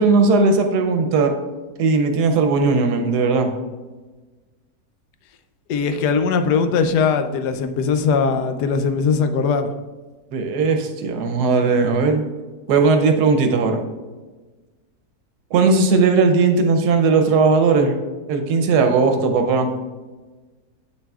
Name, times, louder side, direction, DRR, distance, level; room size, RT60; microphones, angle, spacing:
voice 1, 0.0-1.3 1.8-3.5 10.3-12.2 12.7-13.8 15.5-17.9 18.3-19.7, right 4 dB, 85° right, 6 dB, 1.3 m, -17 dB
voice 2, 5.7-9.7, left 5 dB, 90° left, 8 dB, 1.2 m, -20 dB
7.8 x 6.8 x 2.4 m, 1.3 s
omnidirectional pair, 1.7 m